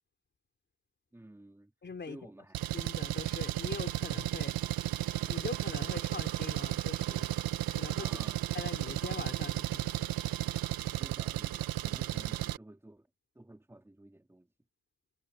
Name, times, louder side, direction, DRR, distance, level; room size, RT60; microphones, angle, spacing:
voice 1, 1.1-1.7 2.1-2.7 8.0-8.4 10.9-13.1 13.3-14.5, right 1 dB, 5° right, 3.0 m, -52 dB
voice 2, 1.8-2.2 2.7-4.7 5.3-7.3 7.7-8.2 8.5-10.1, left 5 dB, 30° left, 3.9 m, -43 dB
Engine, 2.5-12.6, right 15 dB, 75° right, 1.3 m, -34 dB
cardioid pair, 115°, 35 cm